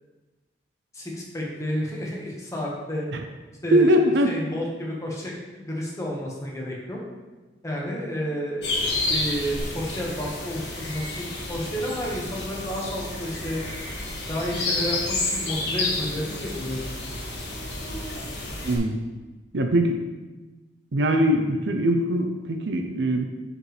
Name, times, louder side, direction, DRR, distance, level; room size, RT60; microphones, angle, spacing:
voice 1, 0.9-3.1 3.6-7.0 7.6-13.6 14.3-16.9, equal, 20° left, -3 dB, 1.4 m, -31 dB
voice 2, 3.7-4.3 18.6-19.0 19.5-20.0 20.9-23.3, equal, 75° right, 5 dB, 0.6 m, -21 dB
sound 1, 8.6-18.8, left 2 dB, 65° left, 1.8 m, -30 dB
8.6 x 5.1 x 3.3 m, 1.2 s
head